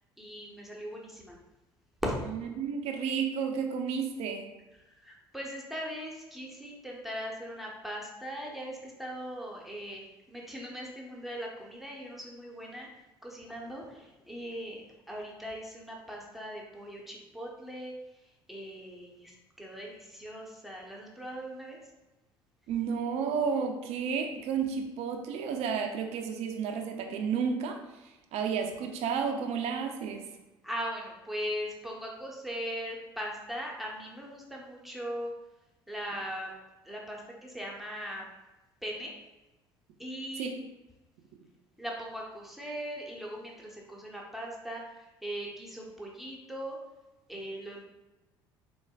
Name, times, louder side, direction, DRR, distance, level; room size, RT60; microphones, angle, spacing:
voice 1, 0.2-1.4 2.0-2.2 5.0-12.9 13.2-17.9 18.5-21.8 30.6-35.3 35.9-36.5 36.8-38.2 38.8-39.1 40.0-40.5 41.8-46.8 47.3-47.9, equal, ahead, -2 dB, 0.9 m, -39 dB
voice 2, 2.3-4.5 22.7-30.3 40.4-40.5, right 6 dB, 60° right, 4 dB, 0.6 m, -32 dB
4.4 x 3.1 x 2.3 m, 1.0 s
hypercardioid pair, 60°, 12 cm